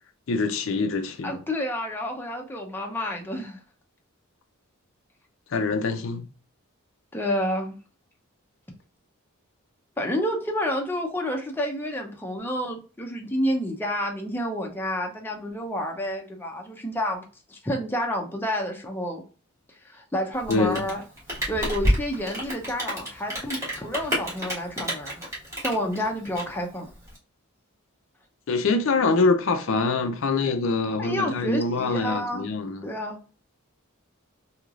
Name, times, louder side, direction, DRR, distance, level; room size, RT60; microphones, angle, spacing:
voice 1, 0.3-1.4 5.5-6.3 20.5-20.8 28.5-32.8, left 3 dB, 70° left, 0.5 m, -24 dB
voice 2, 1.2-3.6 7.1-7.8 10.0-19.2 19.8-21.0 21.5-25.2 25.6-26.9 31.0-32.5 32.8-33.2, equal, 10° left, 0.6 m, -29 dB
Rain, 20.3-27.2, equal, 15° right, 1.5 m, -29 dB
3.1 x 2.8 x 2.4 m
head